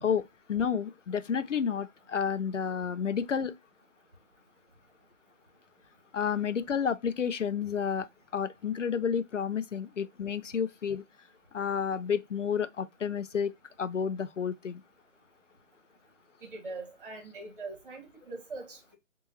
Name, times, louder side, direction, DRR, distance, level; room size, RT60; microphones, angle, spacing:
voice 1, 0.0-3.5 6.1-8.1 8.3-11.0 11.5-14.8, left 7 dB, 65° left, 0.5 m, -31 dB
voice 2, 16.4-19.0, right 3 dB, 40° right, 1.6 m, -42 dB
7.0 x 2.7 x 2.7 m
figure-of-eight pair, 145°, 40 cm